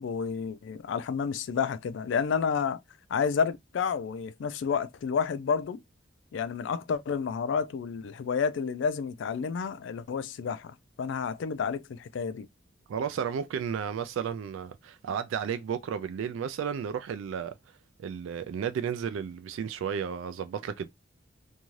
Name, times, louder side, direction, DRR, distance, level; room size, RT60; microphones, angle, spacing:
voice 1, 0.0-2.8 3.1-5.8 6.3-12.5, left 6 dB, 70° left, 0.3 m, -30 dB
voice 2, 12.9-17.5 18.0-20.9, right 7 dB, 90° right, 0.3 m, -33 dB
2.6 x 2.3 x 3.0 m
head